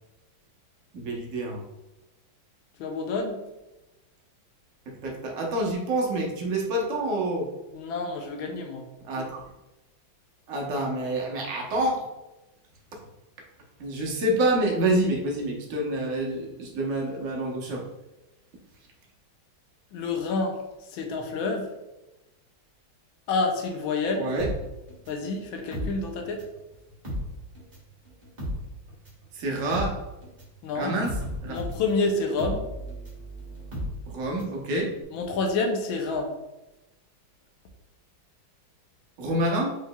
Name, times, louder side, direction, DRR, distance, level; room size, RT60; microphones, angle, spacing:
voice 1, 0.9-1.6 4.9-7.5 9.0-9.5 10.5-12.1 13.8-17.8 24.2-24.5 29.3-30.0 30.7-31.6 34.1-34.9 39.2-39.7, right 1 dB, 55° right, -1 dB, 0.9 m, -27 dB
voice 2, 2.8-3.4 7.7-8.8 19.9-20.6 20.9-21.7 23.3-24.3 25.1-26.4 30.6-30.9 31.5-32.7 35.1-36.3, left 3 dB, 75° left, 3 dB, 1.4 m, -28 dB
sound 1, 24.4-26.6 26.9-34.6 34.9-35.0, equal, 25° right, 1.2 m, -35 dB
4.7 x 3.7 x 2.2 m, 1.0 s
omnidirectional pair, 2.2 m